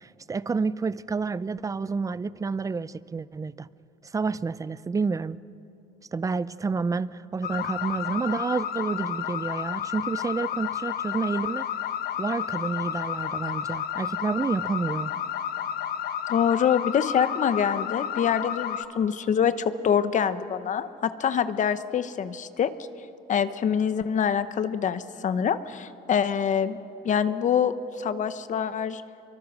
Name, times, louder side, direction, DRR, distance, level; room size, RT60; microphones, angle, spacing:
voice 1, 0.0-3.7 4.0-5.4 6.1-11.7 12.2-15.1, right 4 dB, 20° right, 0.5 m, -29 dB
sound 1, 7.4-18.9, left 9 dB, 65° left, 1.2 m, -31 dB
voice 2, 16.3-22.7 23.3-26.8 27.0-29.0, left 8 dB, 45° left, 1.0 m, -25 dB
27.5 x 24.0 x 6.2 m
cardioid pair, 110°, 17 cm